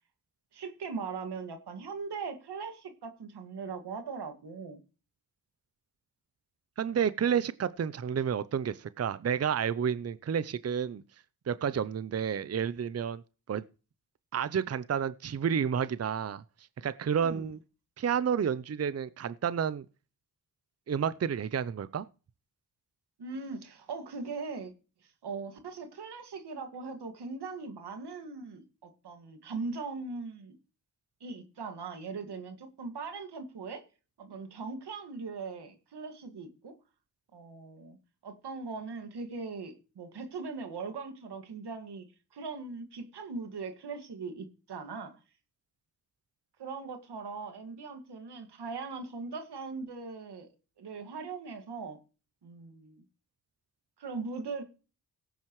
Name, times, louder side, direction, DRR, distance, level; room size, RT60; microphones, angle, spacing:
voice 1, 0.5-4.8 17.2-17.5 23.2-24.7 25.0-30.6 31.2-33.8 34.2-36.7 37.3-38.0 38.2-42.1 42.3-45.1 46.6-50.5 50.8-52.0 52.4-53.0 54.0-54.6, right 4 dB, 90° right, 2.1 m, -40 dB
voice 2, 6.8-11.0 11.5-13.2 13.5-13.6 14.3-16.4 16.8-17.6 18.0-19.9 20.9-22.1, right 7 dB, 40° right, 0.6 m, -30 dB
17.5 x 9.1 x 3.1 m
cardioid pair, 65°, 39 cm